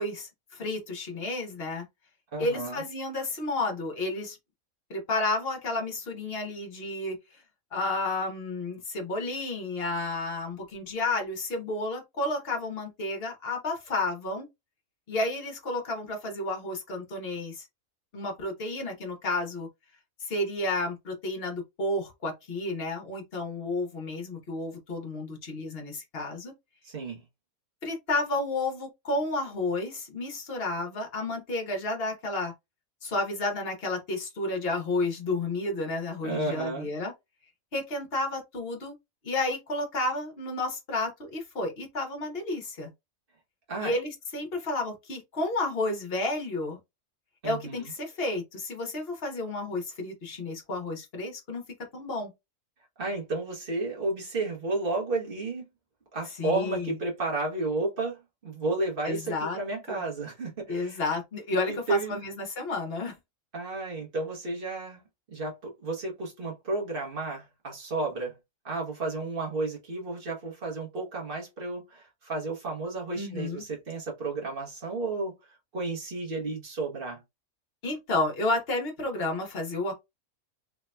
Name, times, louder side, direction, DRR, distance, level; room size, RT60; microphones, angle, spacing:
voice 1, 0.0-1.8 2.4-4.4 4.9-7.2 7.7-14.5 15.1-17.7 18.1-19.7 20.2-26.5 27.8-32.5 33.0-37.1 37.7-38.9 39.2-42.9 43.8-46.8 47.4-51.6 51.9-52.3 56.4-56.9 59.0-59.6 59.9-60.0 60.7-63.2 73.1-73.6 77.8-79.9, left 2 dB, 45° left, 1.1 m, -31 dB
voice 2, 2.3-2.9 26.8-27.2 36.2-36.9 43.7-44.0 47.4-47.9 53.0-55.6 56.1-61.0 61.7-62.2 63.5-65.0 65.3-68.3 68.6-77.2, right 3 dB, 45° right, 1.2 m, -32 dB
3.3 x 2.8 x 2.2 m
omnidirectional pair, 1.5 m